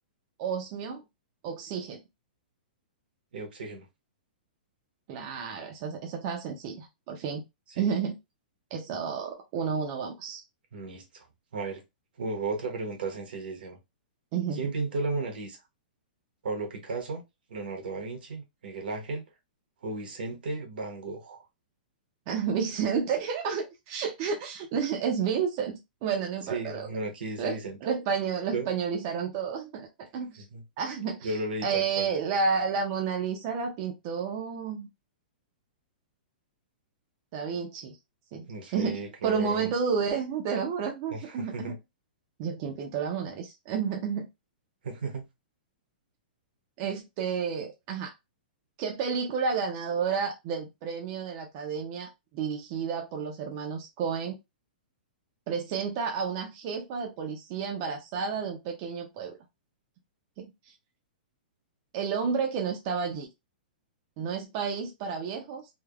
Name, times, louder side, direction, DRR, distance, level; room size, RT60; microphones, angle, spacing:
voice 1, 0.4-1.0 1.4-2.0 5.1-7.4 7.8-8.2 8.7-10.4 14.3-14.6 22.3-26.9 27.4-29.9 30.1-30.4 30.8-31.3 31.6-34.9 37.3-38.0 38.3-41.6 42.4-44.3 46.8-48.1 48.8-54.4 55.5-59.4 60.4-60.7 61.9-63.3 64.2-65.7, right 6 dB, 30° right, 0.5 m, -31 dB
voice 2, 3.3-3.9 7.8-7.9 10.7-11.2 11.5-11.8 12.2-13.8 14.5-15.6 16.4-17.2 17.5-19.2 19.8-21.4 26.5-27.8 28.5-28.8 30.1-30.6 31.2-32.1 38.5-39.7 41.1-41.8 44.8-45.3, right 3 dB, 75° right, 1.0 m, -34 dB
3.3 x 2.1 x 2.3 m
hypercardioid pair, 170°, 5 cm